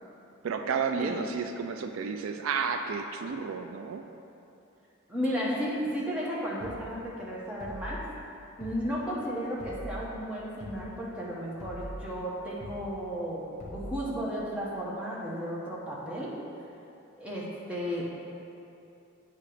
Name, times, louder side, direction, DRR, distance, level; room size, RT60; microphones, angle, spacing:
voice 1, 0.4-4.0, right 5 dB, 75° right, 6 dB, 0.3 m, -31 dB
voice 2, 5.1-8.1 8.6-16.4 17.2-18.0, equal, 5° right, -6 dB, 0.8 m, -34 dB
sound 1, 6.6-6.8 7.6-8.0 8.6-8.8 9.6-10.0 10.6-10.8 11.6-12.0 12.6-12.8 13.6-14.0, equal, 35° left, 1.1 m, -41 dB
8.3 x 2.9 x 4.9 m, 2.8 s
head